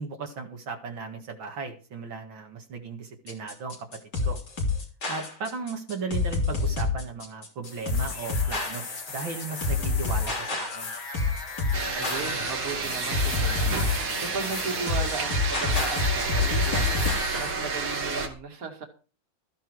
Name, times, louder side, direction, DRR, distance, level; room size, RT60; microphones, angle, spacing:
voice 1, 0.0-4.4 5.1-10.9, right 4 dB, 75° right, 2 dB, 2.5 m, -36 dB
sound 1, 3.3-17.3, left 4 dB, 55° left, 4.0 m, -28 dB
sound 2, 7.6-17.5, left 3 dB, 80° left, 3.4 m, -38 dB
sound 3, 11.7-18.3, right 4 dB, 90° right, 3.0 m, -30 dB
voice 2, 11.9-13.8 14.2-16.9 17.4-18.8, right 4 dB, 45° right, 3 dB, 2.6 m, -36 dB
14.0 x 10.0 x 4.7 m, 0.38 s
omnidirectional pair, 2.2 m